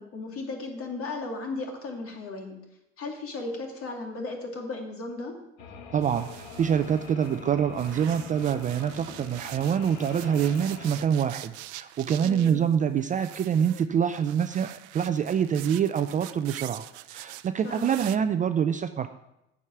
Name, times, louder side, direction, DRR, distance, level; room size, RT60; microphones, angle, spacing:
voice 1, 0.0-2.6 3.0-5.3 12.2-12.6 17.6-18.0, left 3 dB, 45° left, 2 dB, 2.4 m, -35 dB
sound 1, 5.6-11.0, left 5 dB, 75° left, 1.5 m, -44 dB
voice 2, 5.9-19.1, right 8 dB, 25° right, 9 dB, 0.4 m, -26 dB
sound 2, 6.0-7.4 7.7-18.2, right 17 dB, 85° right, 0.5 m, -44 dB
9.1 x 4.9 x 7.8 m, 0.87 s
supercardioid pair, 105°, 32 cm